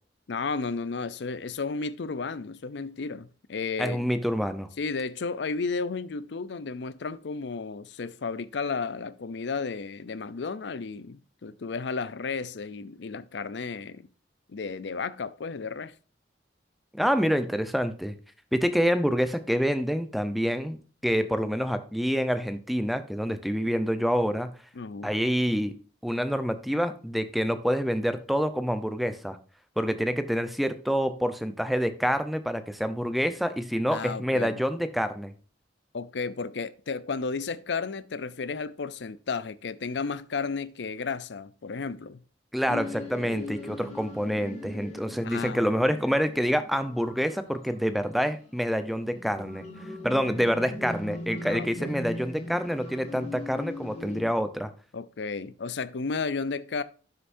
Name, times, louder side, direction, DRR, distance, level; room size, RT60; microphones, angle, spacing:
voice 1, 0.3-4.1 4.8-14.1 14.5-15.9 24.8-25.1 33.9-34.6 35.9-42.2 45.2-45.7 51.4-52.0 54.9-56.8, left 4 dB, 70° left, 0.5 m, -33 dB
voice 2, 3.8-4.7 16.9-18.1 18.5-20.8 21.0-24.5 25.0-25.8 26.0-29.4 29.8-35.3 42.5-49.6 50.0-54.7, equal, ahead, 0.7 m, -27 dB
sound 1, 42.7-54.2, left 2 dB, 40° left, 2.7 m, -39 dB
12.0 x 6.8 x 2.6 m
head